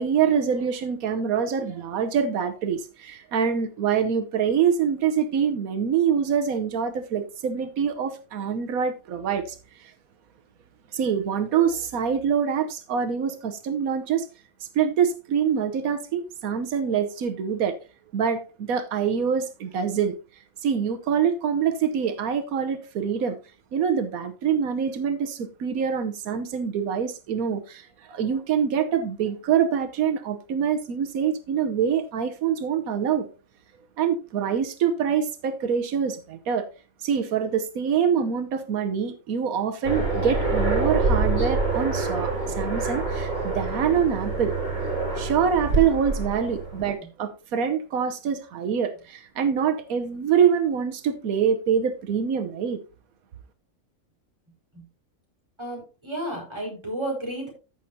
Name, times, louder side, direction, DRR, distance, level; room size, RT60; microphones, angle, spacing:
voice 1, 0.0-9.9 10.9-14.3 14.6-17.8 18.1-20.1 20.6-23.4 23.7-33.3 34.0-36.7 37.0-44.5 45.1-52.8, right 7 dB, 85° right, 1.3 m, -25 dB
Aircraft, 39.8-46.9, right 3 dB, 65° right, 4.2 m, -26 dB
voice 2, 55.6-57.5, right 1 dB, 20° right, 4.7 m, -32 dB
14.5 x 6.3 x 2.8 m
omnidirectional pair, 1.5 m